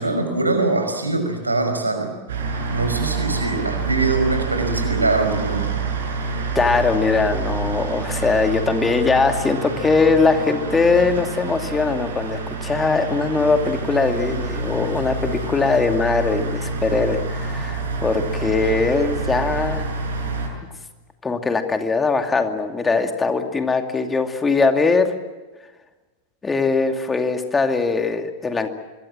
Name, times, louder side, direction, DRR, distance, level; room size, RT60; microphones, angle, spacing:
voice 1, 0.0-2.1 2.7-5.7, right 2 dB, 80° right, 6 dB, 5.6 m, -22 dB
sound 1, 2.3-20.5, right 4 dB, 60° right, 7.3 m, -27 dB
voice 2, 6.5-19.9 21.2-25.1 26.4-28.7, left 4 dB, 15° left, 6 dB, 2.5 m, -21 dB
26.0 x 23.0 x 7.6 m, 1.2 s
figure-of-eight pair, 90°, 0 cm